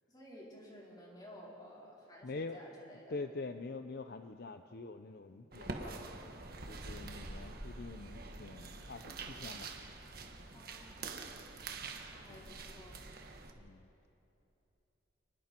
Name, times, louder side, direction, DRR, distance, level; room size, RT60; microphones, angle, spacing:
voice 1, 0.1-3.2 10.5-11.0 12.1-13.1, equal, 20° left, -4 dB, 4.5 m, -54 dB
voice 2, 2.2-6.0 6.7-9.7 12.3-12.5 13.6-14.1, left 3 dB, 55° left, 8 dB, 0.6 m, -45 dB
sound 1, 5.5-13.5, right 3 dB, 50° right, 1.5 m, -46 dB
29.5 x 20.0 x 4.5 m, 3.0 s
head